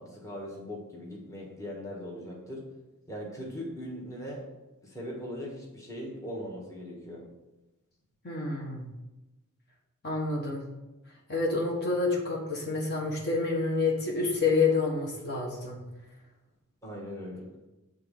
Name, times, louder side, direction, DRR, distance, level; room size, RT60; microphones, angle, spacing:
voice 1, 0.0-2.7 3.1-4.4 4.8-7.2 16.8-17.5, equal, 15° left, -3 dB, 1.4 m, -40 dB
voice 2, 8.2-8.9 10.0-10.6 11.3-15.8, left 3 dB, 50° left, -2 dB, 1.4 m, -28 dB
8.2 x 3.7 x 5.4 m, 1.0 s
head